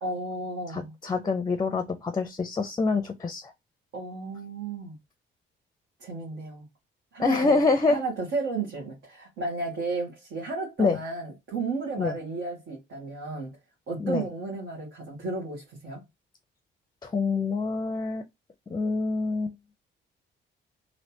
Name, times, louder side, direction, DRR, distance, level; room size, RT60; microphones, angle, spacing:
voice 1, 0.0-0.9 3.9-4.9 6.0-6.6 7.1-7.6 7.9-13.5 13.9-16.0, right 3 dB, 75° right, 1.6 m, -33 dB
voice 2, 0.7-3.5 7.2-8.0 10.8-11.0 12.0-12.2 14.0-14.3 17.0-18.2 18.7-19.6, left 3 dB, 20° left, 0.5 m, -26 dB
3.2 x 2.9 x 2.8 m
cardioid pair, 90°, 20 cm